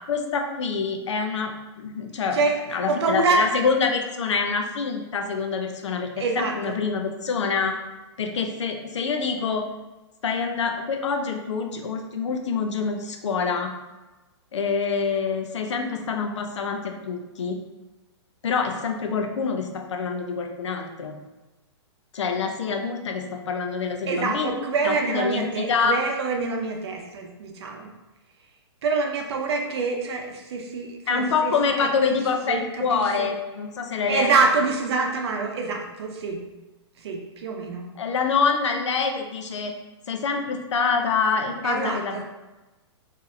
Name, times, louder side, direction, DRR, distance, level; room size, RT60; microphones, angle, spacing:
voice 1, 0.1-2.4 2.7-7.8 8.2-9.7 10.2-13.8 14.5-17.6 18.4-21.2 22.1-24.5 24.8-26.0 31.1-34.3 38.0-39.7 40.1-42.2, left 5 dB, 85° left, 4 dB, 0.6 m, -26 dB
voice 2, 2.3-3.4 6.2-6.8 24.1-27.9 28.8-31.5 31.8-32.2 32.5-33.3 34.0-36.4 37.0-37.9 41.6-42.2, right 4 dB, 65° right, 2 dB, 0.7 m, -26 dB
4.1 x 2.7 x 2.6 m, 1.1 s
hypercardioid pair, 150°, 15 cm